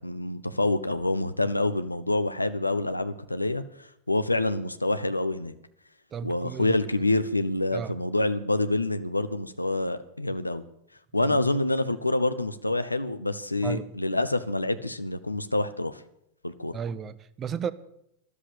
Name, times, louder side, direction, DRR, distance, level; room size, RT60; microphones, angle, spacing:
voice 1, 0.0-5.5 6.2-10.6 11.1-16.0 16.4-16.8, left 2 dB, 85° left, 1.0 m, -27 dB
voice 2, 6.1-6.7 7.7-8.0 11.2-11.4 13.6-13.9 16.7-17.7, right 7 dB, 25° right, 1.0 m, -33 dB
13.5 x 12.5 x 6.8 m
figure-of-eight pair, 90°, 0 cm